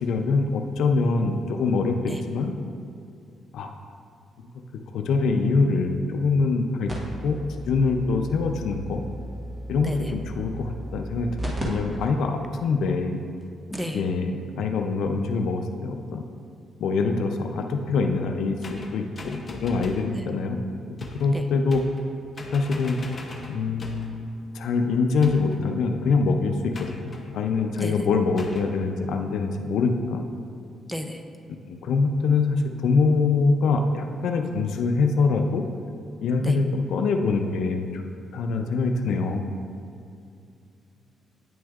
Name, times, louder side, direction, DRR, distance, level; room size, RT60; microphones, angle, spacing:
voice 1, 0.0-2.5 3.5-3.7 4.9-6.9 7.2-7.4 7.7-9.0 9.7-13.2 13.9-16.2 16.8-20.6 21.1-21.8 22.5-23.0 23.5-24.3 24.5-30.2 31.6-35.6 36.2-38.0 38.3-39.4, left 4 dB, 80° left, 5 dB, 0.4 m, -24 dB
sound 1, 6.9-11.6 12.0-12.1 12.7-12.8 13.4-13.5 13.7-14.0 15.2-15.3, right 1 dB, 25° right, 1.2 m, -35 dB
sound 2, 18.6-20.1 21.0-21.3 21.7-22.1 22.4-24.2 25.2-25.7 26.7-27.3 28.4-28.7, left 2 dB, 35° left, 0.7 m, -40 dB
voice 2, 30.9-31.2 36.4-36.6, equal, ahead, 5 dB, 0.5 m, -32 dB
8.7 x 6.1 x 2.4 m, 2.4 s
cardioid pair, 110°, 0 cm